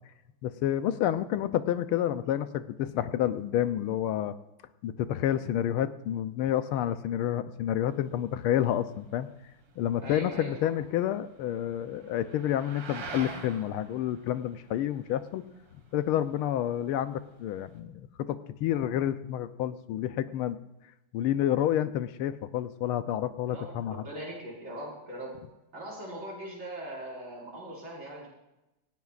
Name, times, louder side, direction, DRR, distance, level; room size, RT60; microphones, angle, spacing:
voice 1, 0.4-4.3 4.8-9.3 9.8-15.4 15.9-20.6 21.1-24.0, left 11 dB, 80° left, 12 dB, 1.5 m, -29 dB
sound 1, 7.9-17.8, right 4 dB, 80° right, 2.7 m, -47 dB
voice 2, 10.0-10.5 23.5-25.3 25.7-28.3, right 1 dB, 60° right, -5 dB, 5.9 m, -40 dB
18.0 x 15.5 x 2.4 m, 0.94 s
omnidirectional pair, 2.4 m